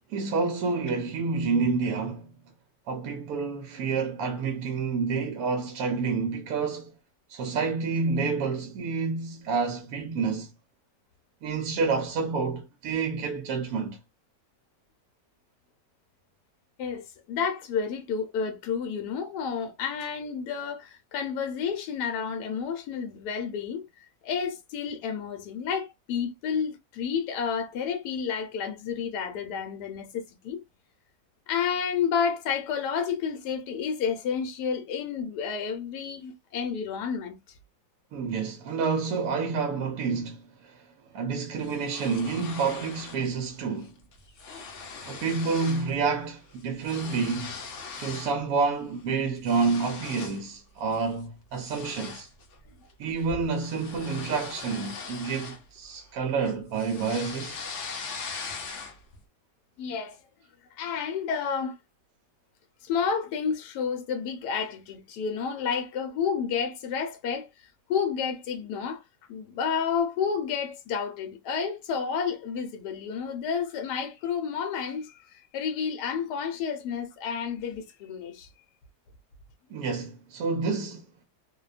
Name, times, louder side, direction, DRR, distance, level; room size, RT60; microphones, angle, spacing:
voice 1, 0.1-2.3 2.9-6.9 7.3-10.5 11.4-14.0 38.1-40.8 41.1-43.9 45.0-47.6 48.0-52.3 53.0-57.6 79.7-81.1, right 4 dB, 70° right, 0.9 m, -29 dB
voice 2, 16.8-23.9 24.2-30.6 31.5-37.4 59.8-60.2 60.7-61.8 62.8-67.5 67.9-69.0 69.3-78.5, left 6 dB, 75° left, 1.2 m, -30 dB
sound 1, 41.6-43.3 43.6-43.9 44.1-45.9 46.2-48.4 48.8-50.5 50.9-51.1 51.6-56.1 56.4-59.2, left 4 dB, 60° left, 0.8 m, -40 dB
2.8 x 2.1 x 2.3 m
omnidirectional pair, 1.8 m